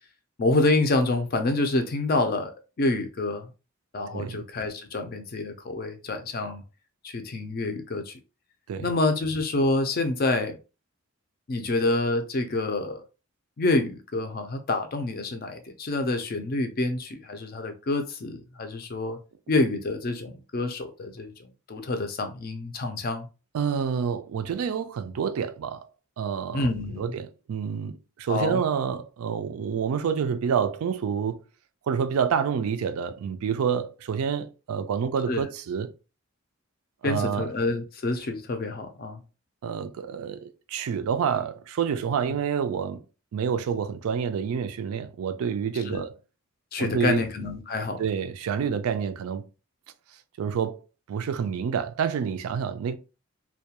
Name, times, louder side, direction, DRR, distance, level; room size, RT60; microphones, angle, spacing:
voice 1, 0.4-2.5 2.8-3.5 3.9-6.6 7.0-8.2 8.8-10.6 11.5-13.0 13.6-19.2 19.5-21.3 21.7-23.3 26.5-27.2 28.3-28.6 35.3-35.4 37.0-39.2 45.9-46.0 46.7-48.0, left 2 dB, 45° left, 0.4 m, -27 dB
voice 2, 4.1-4.5 8.7-8.9 23.5-25.9 26.2-26.7 27.0-31.4 31.9-35.9 37.0-37.5 39.6-43.0 43.3-46.1 46.8-47.2 48.0-49.5 50.4-50.8 51.1-53.0, right 7 dB, 80° right, 0.3 m, -28 dB
2.2 x 2.2 x 2.8 m
head